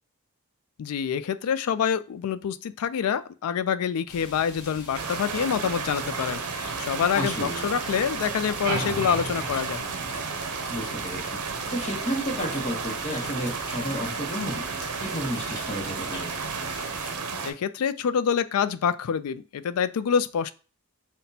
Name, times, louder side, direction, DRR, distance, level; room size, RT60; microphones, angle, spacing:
voice 1, 0.8-9.8 17.4-20.5, left 7 dB, 80° left, 13 dB, 0.3 m, -26 dB
sound 1, 4.1-17.2, left 2 dB, 45° left, 1.1 m, -44 dB
sound 2, 4.9-17.5, right 5 dB, 80° right, 0.6 m, -33 dB
voice 2, 7.1-7.6 10.7-11.2 11.7-14.6 15.0-16.3, equal, 30° left, -1 dB, 0.9 m, -32 dB
sound 3, 8.6-10.9, right 3 dB, 45° right, 0.9 m, -34 dB
5.8 x 2.1 x 2.7 m, 0.35 s
head